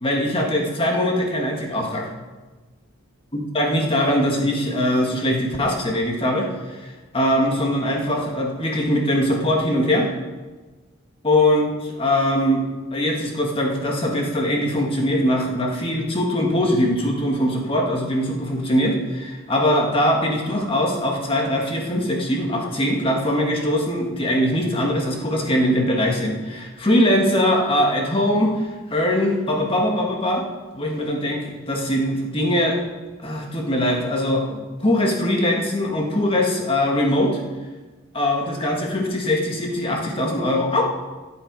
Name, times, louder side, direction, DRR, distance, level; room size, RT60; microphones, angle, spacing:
voice 1, 0.0-2.1 3.5-10.1 11.2-12.6 12.9-30.4 30.7-32.8 33.2-37.4 38.1-40.8, left 1 dB, 25° left, 0 dB, 1.7 m, -21 dB
14.5 x 7.9 x 4.8 m, 1.3 s
head